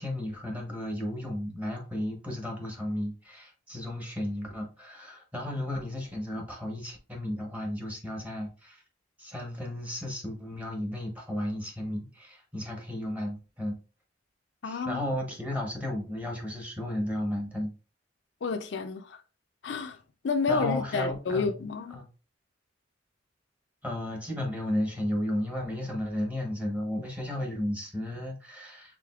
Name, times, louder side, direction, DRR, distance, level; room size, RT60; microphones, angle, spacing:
voice 1, 0.0-8.8 9.2-13.7 14.6-17.7 20.5-21.5 21.9-22.1 23.8-29.0, left 1 dB, 10° right, 1.0 m, -34 dB
voice 2, 14.6-15.0 18.4-19.2 19.6-20.0 20.2-22.0, left 4 dB, 65° left, 0.4 m, -30 dB
4.9 x 3.7 x 2.3 m
head